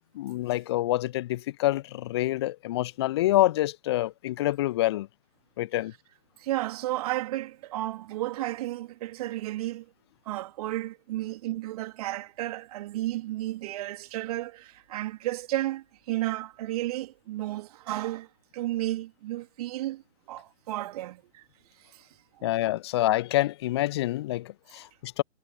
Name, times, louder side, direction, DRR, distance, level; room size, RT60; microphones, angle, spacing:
voice 1, 0.1-5.1 5.6-5.9 22.4-25.2, left 15 dB, 25° left, 0.8 m, -27 dB
voice 2, 6.4-9.8 10.2-18.3 18.5-20.0 20.3-21.4 21.8-22.1 22.4-22.5, right 16 dB, 35° right, 3.4 m, -33 dB
figure-of-eight pair, 130°, 35 cm